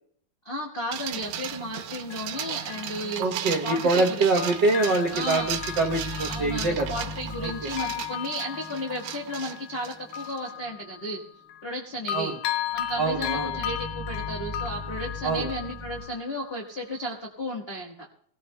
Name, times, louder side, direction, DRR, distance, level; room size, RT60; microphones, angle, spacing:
voice 1, 0.4-4.4 5.1-5.5 6.3-11.2 11.6-12.4 12.7-18.1, equal, 65° left, -3 dB, 0.5 m, -34 dB
sound 1, 0.9-10.5, right 10 dB, 90° right, 2.3 m, -36 dB
Bell, 1.1-1.2 2.1-4.1 4.4-11.8 12.1-16.7 17.1-17.2, left 11 dB, 85° left, 2.2 m, -36 dB
voice 2, 3.2-6.9 7.4-7.7 12.1-12.3 13.0-13.5 15.2-15.5, right 3 dB, 70° right, 0 dB, 1.0 m, -25 dB
sound 2, 5.1-10.2 12.7-16.0, left 1 dB, 20° right, 1.4 m, -39 dB
24.5 x 17.5 x 2.2 m, 0.64 s
omnidirectional pair, 3.5 m